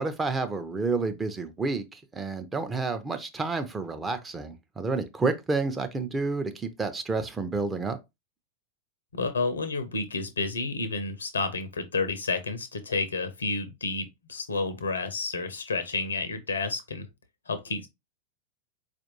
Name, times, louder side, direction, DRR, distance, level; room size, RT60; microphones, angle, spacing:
voice 1, 0.0-8.0, right 3 dB, 15° right, 0.5 m, -30 dB
voice 2, 9.1-17.1 17.5-17.9, left 3 dB, 75° left, 0.6 m, -30 dB
4.4 x 2.5 x 2.8 m
figure-of-eight pair, 90°, 0 cm